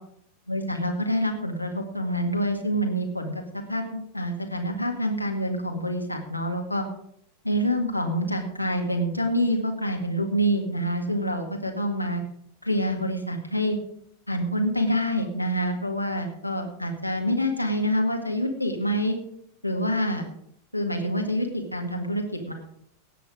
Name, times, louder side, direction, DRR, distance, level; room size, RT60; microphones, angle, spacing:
voice 1, 0.5-6.8 7.4-12.2 12.6-13.8 14.3-19.2 19.6-20.3 20.7-22.5, equal, 90° left, 2 dB, 2.0 m, -26 dB
18.0 x 7.0 x 5.1 m, 0.69 s
figure-of-eight pair, 90°, 0 cm